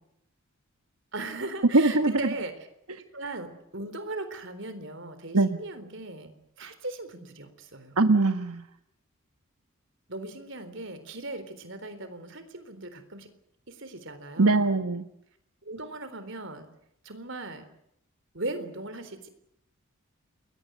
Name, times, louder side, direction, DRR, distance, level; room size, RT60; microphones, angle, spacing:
voice 1, 1.1-2.6 3.0-6.3 6.6-8.0 10.1-13.3 13.7-14.7 15.6-16.7 17.0-17.7 18.3-19.3, right 2 dB, 55° right, 10 dB, 3.9 m, -38 dB
voice 2, 1.7-2.2 5.3-5.6 8.0-8.6 14.4-15.0, right 3 dB, 90° right, 8 dB, 1.2 m, -22 dB
29.5 x 22.5 x 6.3 m, 0.76 s
head